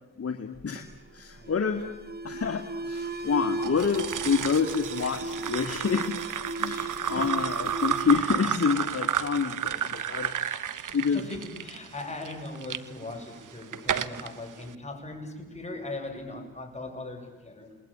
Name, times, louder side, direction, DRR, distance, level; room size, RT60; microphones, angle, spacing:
voice 1, 0.2-0.9 1.1-2.0 2.2-6.2 6.6-10.3 10.9-11.2, left 6 dB, 40° left, 5 dB, 2.1 m, -28 dB
Alarm, 0.7-9.3, right 2 dB, 25° right, 2.1 m, -37 dB
voice 2, 1.4-1.9 6.7-7.4 10.7-17.8, left 2 dB, 20° left, 3 dB, 7.5 m, -40 dB
sound 1, 3.6-12.8 13.4-14.3, right 9 dB, 55° right, 1.2 m, -32 dB
28.5 x 20.5 x 8.9 m, 1.2 s
supercardioid pair, 60°, 37 cm